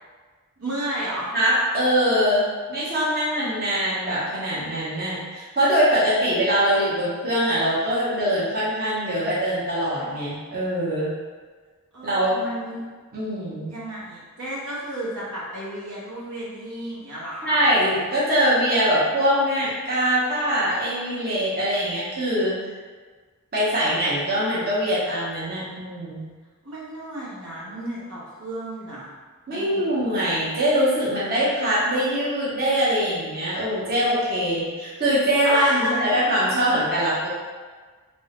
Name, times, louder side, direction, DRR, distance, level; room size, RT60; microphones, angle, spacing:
voice 1, 0.6-1.3 11.9-12.9 13.7-17.6 26.6-29.1 29.5-30.2 35.4-36.0, right 1 dB, 75° right, -8 dB, 1.0 m, -32 dB
voice 2, 1.3-11.2 12.0-12.3 13.1-13.7 17.4-22.6 23.5-26.3 29.5-37.3, equal, 45° right, -9 dB, 0.9 m, -23 dB
3.1 x 2.6 x 2.9 m, 1.4 s
head